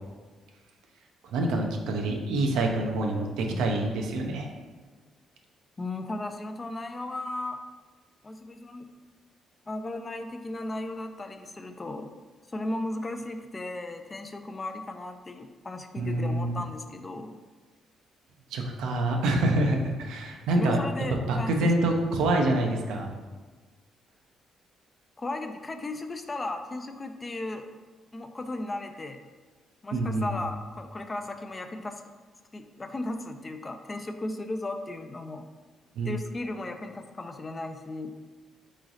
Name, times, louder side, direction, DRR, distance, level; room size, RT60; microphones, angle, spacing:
voice 1, 1.3-4.5 16.0-16.6 18.5-20.8 21.3-23.1 29.9-30.4 36.0-36.1, right 2 dB, 85° right, 2 dB, 0.6 m, -26 dB
voice 2, 5.8-7.6 8.2-8.9 9.7-12.1 12.5-17.4 20.6-21.7 25.2-27.7 28.1-29.2 29.8-32.0 32.5-35.5 36.0-38.1, left 2 dB, 25° left, 7 dB, 0.4 m, -35 dB
3.8 x 3.1 x 3.9 m, 1.4 s
cardioid pair, 90°, 0 cm